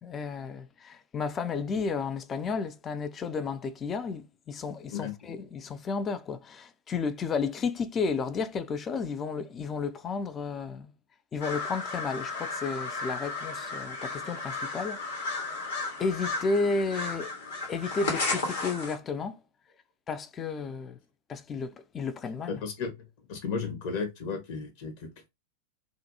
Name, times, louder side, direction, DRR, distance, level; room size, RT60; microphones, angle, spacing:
voice 1, 0.0-10.9 11.3-15.6 16.0-17.3 17.7-19.4 20.1-21.0 21.3-22.6, left 4 dB, 25° left, 0.3 m, -32 dB
sound 1, 11.4-19.0, left 3 dB, 65° left, 1.1 m, -34 dB
voice 2, 22.5-25.3, left 5 dB, 45° left, 0.9 m, -34 dB
2.4 x 2.2 x 2.7 m
figure-of-eight pair, 90°, 0 cm